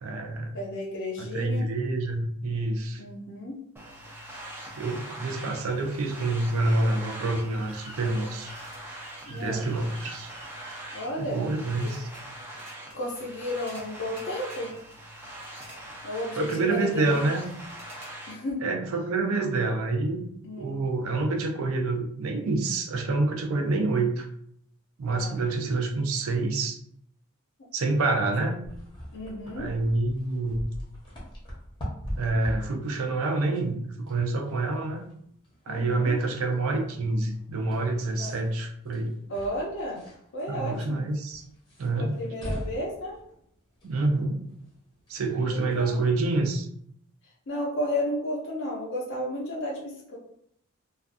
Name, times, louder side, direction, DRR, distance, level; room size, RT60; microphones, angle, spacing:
voice 1, 0.0-0.5 1.2-3.0 4.7-8.5 9.3-10.3 11.2-12.1 16.4-17.5 18.6-20.2 20.6-24.3 25.0-26.8 27.7-28.6 29.6-30.6 32.2-35.1 35.7-39.2 40.5-41.4 41.8-42.2 43.8-44.4 45.1-46.7, right 2 dB, 75° right, 4 dB, 0.4 m, -27 dB
voice 2, 0.5-1.7 3.0-3.6 9.3-9.6 10.9-11.4 11.8-11.9 12.9-14.7 16.0-17.4 18.3-18.7 20.4-20.8 25.1-25.4 29.1-29.7 35.7-36.1 38.2-38.3 39.3-40.0 40.3-41.0 42.0-43.2 45.5-46.0 47.5-50.2, left 1 dB, 55° left, -4 dB, 0.5 m, -33 dB
sound 1, 3.8-18.3, right 1 dB, 10° right, 0.4 m, -43 dB
sound 2, 7.3-12.2 12.5-13.1 13.5-13.9 14.2-14.9 15.4-15.9 16.3-16.9 17.5-18.1, right 1 dB, 30° right, 0.8 m, -50 dB
sound 3, 28.6-46.0, equal, 20° left, 0.7 m, -42 dB
2.5 x 2.3 x 2.5 m, 0.70 s
head